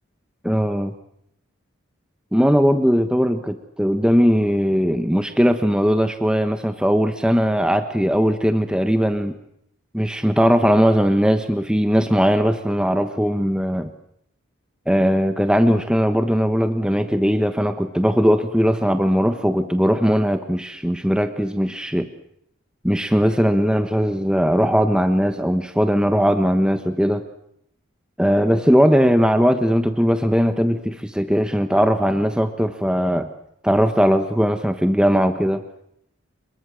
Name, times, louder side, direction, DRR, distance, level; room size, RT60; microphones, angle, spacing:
voice 1, 0.4-0.9 2.3-9.3 9.9-13.9 14.9-22.1 22.8-27.2 28.2-33.3 33.6-35.6, equal, 5° right, 7 dB, 1.3 m, -19 dB
26.5 x 23.0 x 7.8 m, 0.72 s
head